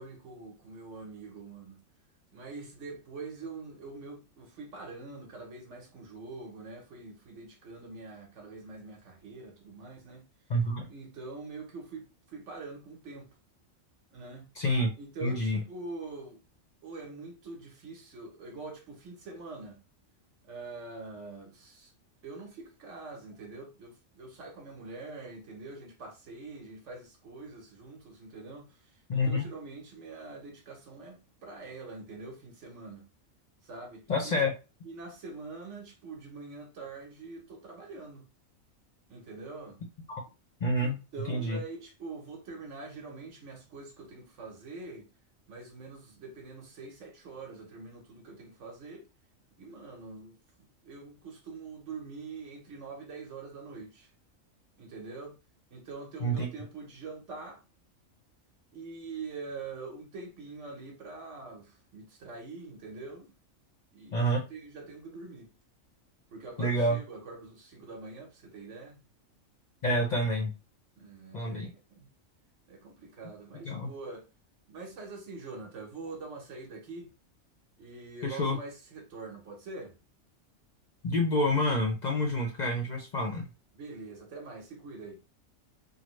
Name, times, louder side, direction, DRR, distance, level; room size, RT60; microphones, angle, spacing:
voice 1, 0.0-1.8 2.3-10.3 10.9-13.3 14.1-14.5 15.0-16.4 16.8-19.8 20.4-21.9 22.2-28.8 29.1-33.1 33.6-34.4 34.8-38.3 39.1-39.8 40.8-45.1 45.5-49.0 49.6-54.1 54.8-55.4 55.7-57.6 58.7-63.3 63.9-65.5 66.3-69.0 71.0-72.1 72.7-74.2 74.7-77.1 77.8-80.0 83.7-85.2, right 3 dB, 65° right, 1.3 m, -44 dB
voice 2, 10.5-10.9 14.6-14.9 15.2-15.6 29.1-29.5 34.1-34.5 40.1-40.2 40.6-41.0 41.3-41.6 56.2-56.5 64.1-64.4 66.6-67.0 69.8-70.5 71.3-71.7 73.6-73.9 78.2-78.6 81.0-83.5, left 1 dB, 50° left, 0.6 m, -28 dB
3.2 x 2.1 x 3.1 m
omnidirectional pair, 1.4 m